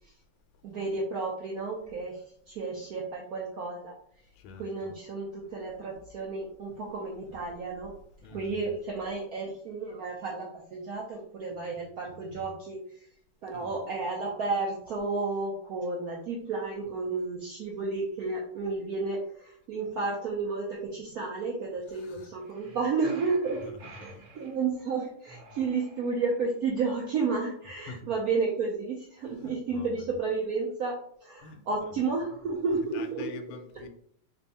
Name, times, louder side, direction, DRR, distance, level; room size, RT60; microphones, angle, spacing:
voice 1, 0.6-3.9 4.6-7.9 8.3-12.8 13.4-33.3, right 4 dB, 75° right, 0.8 m, -32 dB
voice 2, 4.4-5.0 5.5-5.7 8.2-8.7 13.5-13.8 21.1-21.2 21.9-22.3 23.8-24.2 27.9-28.1 29.3-30.0 31.4-32.0 32.9-33.9, left 4 dB, 85° left, 1.4 m, -46 dB
sound 1, 22.4-24.6 25.2-26.5, right 2 dB, 45° right, 1.2 m, -50 dB
3.4 x 2.3 x 4.0 m
omnidirectional pair, 2.2 m